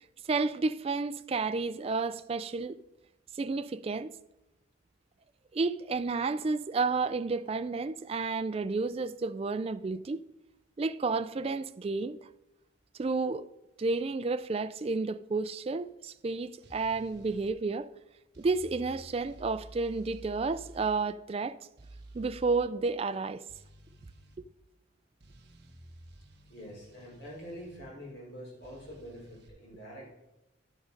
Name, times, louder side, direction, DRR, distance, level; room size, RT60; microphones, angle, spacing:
voice 1, 0.3-2.8 3.3-4.1 5.5-10.2 10.8-12.2 13.0-13.5 13.8-17.9 18.4-21.6 22.1-23.4, right 3 dB, 30° right, 0.3 m, -31 dB
sound 1, 16.6-17.5 18.3-21.0 21.8-22.7 23.5-24.4 25.2-27.8 28.6-29.5, right 2 dB, 55° right, 1.2 m, -52 dB
voice 2, 26.5-30.1, equal, 55° left, 3.9 m, -45 dB
11.5 x 6.4 x 5.1 m
head